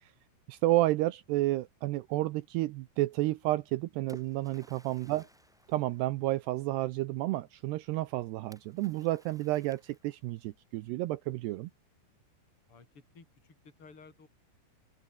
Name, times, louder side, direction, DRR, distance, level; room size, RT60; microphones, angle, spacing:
voice 1, 0.5-5.3 5.7-11.7, right 17 dB, 80° right, 2.5 m, -31 dB
Splash splatter, 3.5-6.7 8.5-10.4, equal, ahead, 1.5 m, -58 dB
voice 2, 12.7-14.3, left 4 dB, 30° left, 6.3 m, -56 dB
open air
omnidirectional pair, 5.4 m